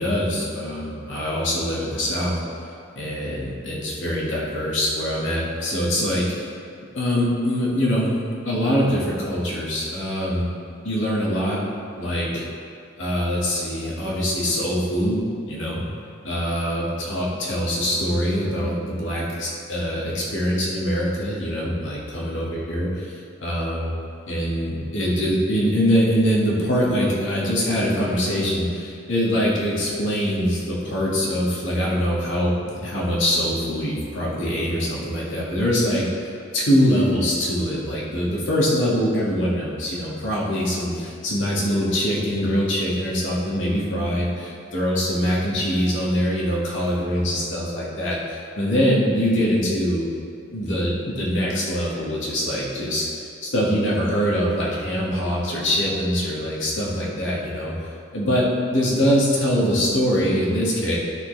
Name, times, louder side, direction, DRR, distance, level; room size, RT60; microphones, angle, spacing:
voice 1, 0.0-2.4 3.0-6.3 6.9-8.2 8.4-10.5 10.8-11.6 12.0-12.4 13.0-15.2 15.5-15.8 16.2-23.9 24.3-36.1 36.5-50.1 50.5-53.1 53.4-57.7 58.1-61.0, equal, 80° left, -5 dB, 2.0 m, -23 dB
12.0 x 6.2 x 3.4 m, 2.4 s
head